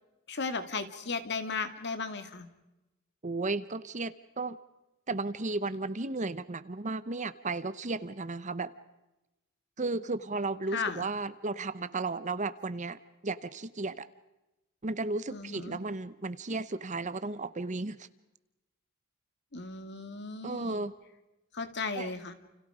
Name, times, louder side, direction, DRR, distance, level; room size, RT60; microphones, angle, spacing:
voice 1, 0.3-2.5 10.7-11.1 15.3-15.8 19.5-20.8 21.5-22.3, left 4 dB, 50° left, 9 dB, 2.2 m, -35 dB
voice 2, 3.2-4.6 5.1-8.7 9.8-13.0 13.2-14.1 14.8-18.1 20.4-20.9 21.9-22.1, right 3 dB, 35° right, 14 dB, 0.9 m, -34 dB
30.0 x 29.0 x 5.0 m, 0.99 s
head